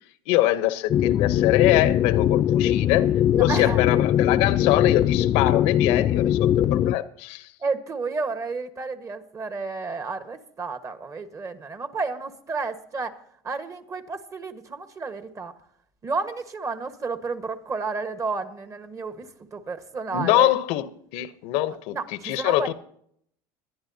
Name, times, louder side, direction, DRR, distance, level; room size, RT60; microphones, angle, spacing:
voice 1, 0.3-3.1 3.4-7.5 20.1-22.0 22.2-22.7, left 15 dB, 70° left, 0.9 m, -24 dB
sound 1, 0.9-6.9, left 11 dB, 35° left, 0.4 m, -21 dB
voice 2, 3.3-3.8 7.6-13.2 13.4-15.5 16.0-20.5 21.9-22.7, right 4 dB, 30° right, 1.4 m, -31 dB
21.0 x 11.0 x 2.8 m
supercardioid pair, 105°, 11 cm